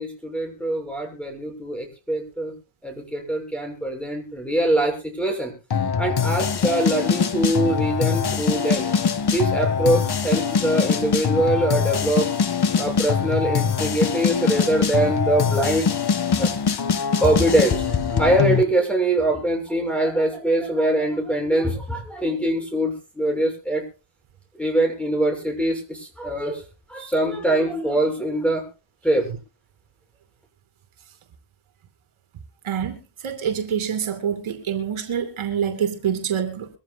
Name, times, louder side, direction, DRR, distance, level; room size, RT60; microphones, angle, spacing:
voice 1, 0.0-2.5 2.8-5.5 6.0-8.9 9.3-12.3 12.8-15.9 16.3-16.5 17.2-23.8 24.6-26.6 26.9-28.7 29.0-29.3, right 1 dB, ahead, 3 dB, 6.6 m, -23 dB
sound 1, 5.7-18.6, left 6 dB, 50° left, 1.7 m, -23 dB
voice 2, 32.6-36.7, right 8 dB, 75° right, 7 dB, 2.6 m, -26 dB
23.5 x 14.5 x 2.3 m, 0.31 s
cardioid pair, 120°, 49 cm